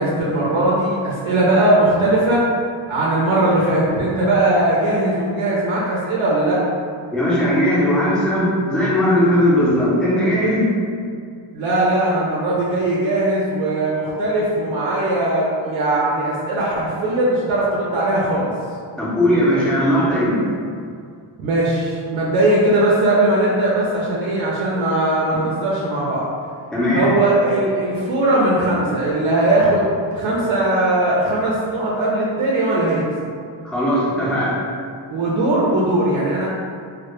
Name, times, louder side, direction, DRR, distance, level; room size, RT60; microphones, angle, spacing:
voice 1, 0.0-2.5 2.9-6.6 11.5-18.5 21.4-26.3 26.9-33.0 35.1-36.5, right 1 dB, 85° right, -5 dB, 0.6 m, -19 dB
voice 2, 7.1-10.7 19.0-20.4 26.7-27.2 33.6-34.6, equal, ahead, -8 dB, 0.3 m, -18 dB
2.1 x 2.0 x 2.9 m, 2.2 s
wide cardioid pair, 155°, 46 cm